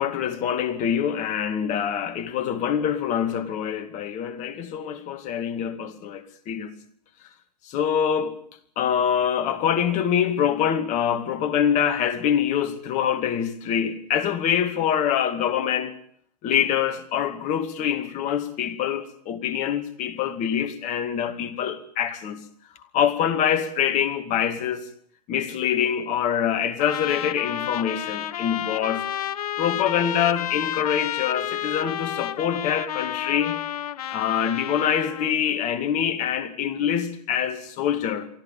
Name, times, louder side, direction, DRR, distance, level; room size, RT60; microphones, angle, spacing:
voice 1, 0.0-6.7 7.6-8.4 8.8-16.0 16.4-22.4 22.9-24.9 25.3-29.0 29.6-33.6 34.1-38.3, left 9 dB, 35° left, 2.3 m, -25 dB
Trumpet, 26.8-35.4, left 11 dB, 65° left, 1.0 m, -31 dB
23.5 x 14.5 x 9.2 m
hypercardioid pair, 105°, 21 cm